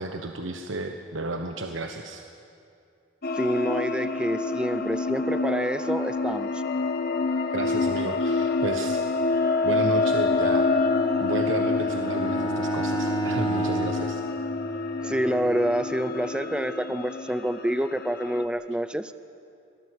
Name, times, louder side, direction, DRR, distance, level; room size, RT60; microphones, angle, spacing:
voice 1, 0.0-2.2 7.5-9.1 9.6-10.7 11.2-14.2, right 2 dB, 80° right, 5 dB, 1.1 m, -32 dB
sound 1, 3.2-18.5, left 3 dB, 50° left, 1.3 m, -27 dB
voice 2, 3.3-6.6 15.0-19.1, equal, 5° right, 11 dB, 0.5 m, -27 dB
Bowed string instrument, 10.5-15.1, right 1 dB, 25° left, 4.6 m, -31 dB
25.0 x 18.0 x 8.1 m, 2.5 s
head